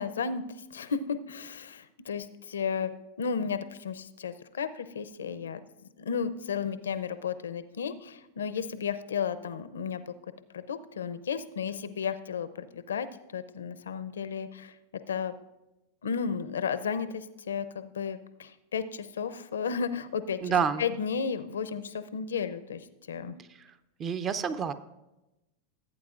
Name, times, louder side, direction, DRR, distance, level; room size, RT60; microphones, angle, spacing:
voice 1, 0.0-5.6 6.0-10.1 10.5-13.1 13.3-14.8 15.1-15.3 16.0-20.5 20.8-23.4, left 6 dB, 85° left, 12 dB, 0.5 m, -33 dB
voice 2, 20.4-20.8 23.6-23.7 24.0-24.7, right 6 dB, 30° right, 13 dB, 0.6 m, -28 dB
15.5 x 8.6 x 2.4 m, 0.97 s
hypercardioid pair, 105°, 0 cm